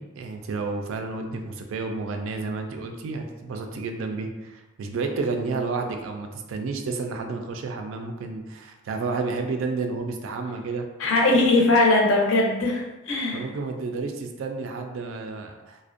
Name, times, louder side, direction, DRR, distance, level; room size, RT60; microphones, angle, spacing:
voice 1, 0.0-10.9 13.3-15.8, right 4 dB, 70° right, 4 dB, 0.3 m, -31 dB
voice 2, 11.0-13.4, left 2 dB, 70° left, 0 dB, 0.5 m, -20 dB
2.5 x 2.1 x 2.4 m, 1.1 s
head